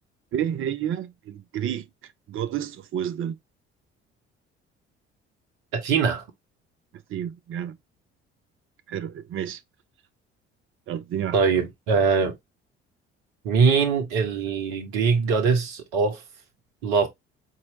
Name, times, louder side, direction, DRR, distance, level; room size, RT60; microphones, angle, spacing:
voice 1, 0.3-3.4 7.1-7.8 8.9-9.6 10.9-11.4, right 10 dB, 40° right, 0.6 m, -30 dB
voice 2, 5.7-6.2 11.3-12.4 13.4-16.2 16.8-17.1, right 5 dB, 65° right, 1.0 m, -22 dB
4.3 x 2.7 x 2.7 m
figure-of-eight pair, 50°, 33 cm